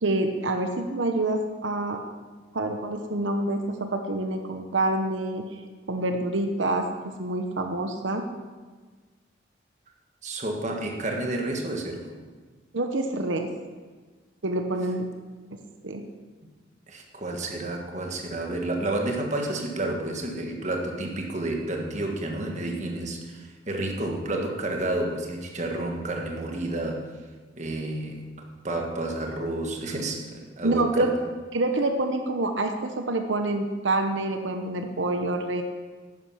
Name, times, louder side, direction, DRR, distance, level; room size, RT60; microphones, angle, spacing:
voice 1, 0.0-2.0 2.5-5.5 5.9-8.3 12.7-13.5 14.4-15.1 15.5-16.0 30.6-31.1 31.5-35.6, right 2 dB, 85° right, 5 dB, 1.0 m, -27 dB
voice 2, 10.2-12.2 16.4-16.5 16.9-27.0 27.6-31.1, right 2 dB, 40° right, 2 dB, 1.6 m, -30 dB
11.5 x 9.9 x 5.7 m, 1.4 s
head